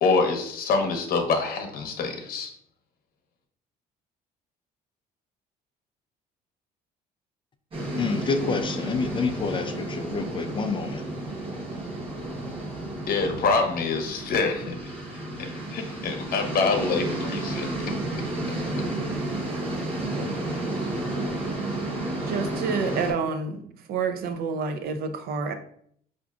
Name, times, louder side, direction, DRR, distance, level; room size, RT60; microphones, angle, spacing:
voice 1, 0.0-2.5 13.1-14.9 15.7-17.7, left 4 dB, 60° left, 5 dB, 0.8 m, -25 dB
sound 1, 7.7-23.1, right 2 dB, 35° right, 1.0 m, -31 dB
voice 2, 8.0-11.0, left 4 dB, 30° left, 7 dB, 0.3 m, -28 dB
voice 3, 22.3-23.6 23.9-25.5, right 5 dB, 65° right, 8 dB, 0.5 m, -28 dB
4.8 x 2.5 x 2.4 m, 0.65 s
cardioid pair, 110°, 17 cm